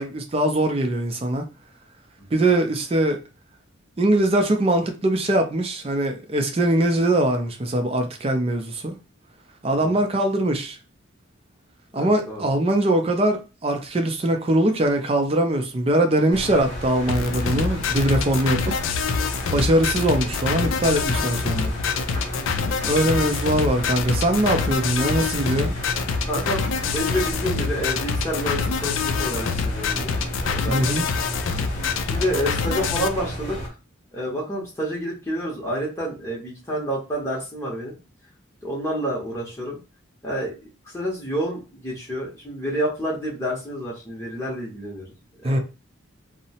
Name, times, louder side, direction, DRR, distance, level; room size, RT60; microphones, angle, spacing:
voice 1, 0.0-1.5 2.3-3.2 4.0-8.9 9.6-10.8 11.9-18.6 19.1-19.2 19.5-21.7 22.8-25.8 30.6-31.1 45.4-45.6, right 1 dB, 30° right, 0.4 m, -22 dB
voice 2, 11.9-12.5 22.4-23.2 26.3-30.2 30.4-31.0 32.0-33.6 34.1-38.0 38.6-39.8 40.2-40.5 40.9-45.0 45.4-45.6, equal, 15° left, 0.7 m, -29 dB
Engine, 16.3-33.7, equal, 35° left, 0.9 m, -32 dB
sound 1, 17.1-33.1, left 5 dB, 75° left, 0.3 m, -26 dB
2.7 x 2.0 x 2.7 m
head